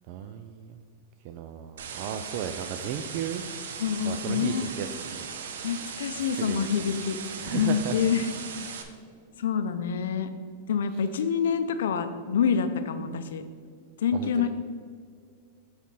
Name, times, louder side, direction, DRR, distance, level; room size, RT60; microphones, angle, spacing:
voice 1, 0.1-0.8 1.2-3.4 4.0-5.3 5.6-5.8 6.4-6.7 7.4-8.0 10.9-11.0 14.1-14.5, right 9 dB, 40° right, 7 dB, 0.3 m, -35 dB
sound 1, 1.8-8.8, right 6 dB, 85° right, 0.8 m, -38 dB
voice 2, 3.8-4.7 5.6-7.2 7.4-8.3 9.3-10.3 10.7-13.4 14.0-14.5, left 7 dB, 85° left, 9 dB, 0.5 m, -27 dB
7.3 x 4.3 x 5.4 m, 2.1 s
supercardioid pair, 160°, 0 cm